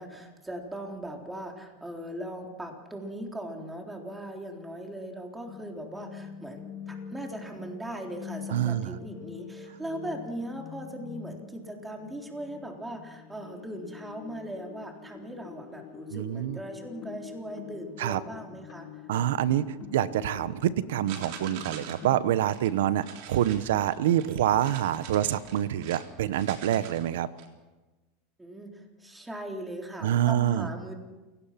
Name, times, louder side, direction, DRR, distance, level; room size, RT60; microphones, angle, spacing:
voice 1, 0.0-19.1 28.4-30.9, right 1 dB, 10° right, 2 dB, 3.7 m, -39 dB
sound 1, 5.5-22.3, left 7 dB, 40° left, 6.1 m, -45 dB
voice 2, 8.5-8.9 16.1-16.6 18.0-18.2 19.1-19.6 19.9-27.3 30.0-30.7, right 11 dB, 85° right, 15 dB, 1.1 m, -26 dB
sound 2, 21.1-22.1 22.4-22.7 23.0-26.0 26.3-27.5, right 8 dB, 65° right, 3.5 m, -44 dB
29.0 x 17.5 x 5.9 m, 1.2 s
supercardioid pair, 125°, 0 cm